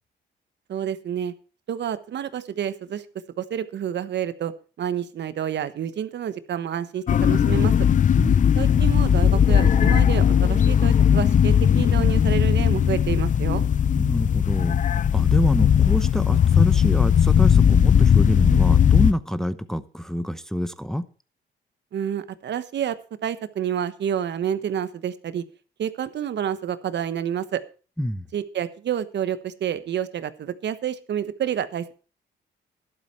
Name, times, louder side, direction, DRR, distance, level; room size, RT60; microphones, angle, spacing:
voice 1, 0.7-1.3 1.7-3.0 3.4-4.5 4.8-7.7 8.6-13.6 21.9-25.4 25.8-27.6 28.3-31.9, right 9 dB, 60° right, 13 dB, 1.2 m, -29 dB
sound 1, 7.1-19.1, left 8 dB, 40° left, 0.5 m, -18 dB
voice 2, 8.2-8.5 14.0-14.8 15.1-21.1 28.0-28.3, equal, ahead, 12 dB, 0.8 m, -26 dB
12.0 x 11.5 x 4.6 m, 0.36 s
cardioid pair, 90°, 20 cm